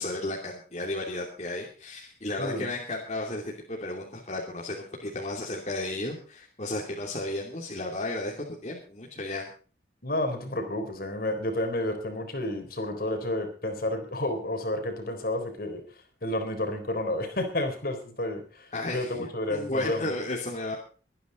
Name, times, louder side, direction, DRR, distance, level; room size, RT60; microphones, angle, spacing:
voice 1, 0.0-9.5 18.7-20.8, left 2 dB, 40° left, -2 dB, 3.0 m, -33 dB
voice 2, 10.0-15.8 16.2-20.1, left 1 dB, 55° left, 6 dB, 3.9 m, -31 dB
23.0 x 10.0 x 4.0 m, 0.38 s
head